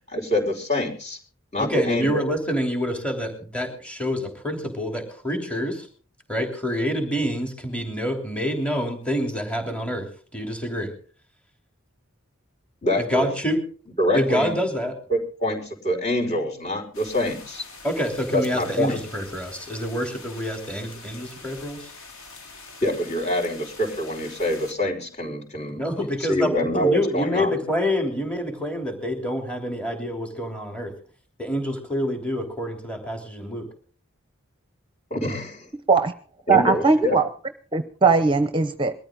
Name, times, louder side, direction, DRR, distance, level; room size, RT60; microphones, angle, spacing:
voice 1, 0.1-1.2 1.5-2.3 12.8-13.3 14.0-14.5 15.1-17.7 18.3-19.0 22.8-25.8 26.2-27.6 35.1-35.7 36.5-37.2, left 1 dB, 35° left, 0 dB, 5.4 m, -25 dB
voice 2, 1.6-5.9 6.3-10.1 10.3-10.9 13.0-13.6 14.1-14.9 17.8-21.9 25.8-30.9 31.4-33.7, equal, 5° left, 3 dB, 3.2 m, -27 dB
sound 1, 16.9-24.7, left 3 dB, 85° left, 4.2 m, -44 dB
voice 3, 36.5-37.2 37.7-38.9, right 4 dB, 25° right, 9 dB, 0.8 m, -19 dB
22.0 x 14.0 x 3.8 m, 0.42 s
head